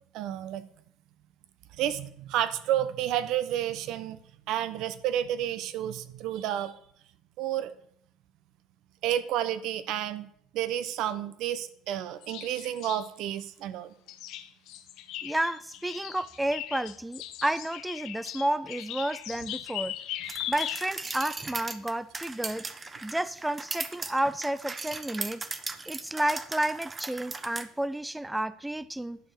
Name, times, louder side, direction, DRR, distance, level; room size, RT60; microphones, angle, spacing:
voice 1, 0.1-0.6 1.8-4.2 4.5-6.7 7.4-7.7 9.0-10.3 10.5-13.9, right 11 dB, 70° right, 13 dB, 0.8 m, -30 dB
sound 1, 11.9-12.0 12.2-13.1 14.1-21.3, left 12 dB, 70° left, 0.9 m, -39 dB
voice 2, 15.2-19.9 20.5-22.7 23.0-25.5 25.9-29.2, right 1 dB, 5° right, 16 dB, 0.4 m, -31 dB
sound 2, 20.3-27.7, right 3 dB, 25° right, 0.9 m, -38 dB
11.0 x 4.6 x 7.1 m, 0.65 s
supercardioid pair, 85°, 0 cm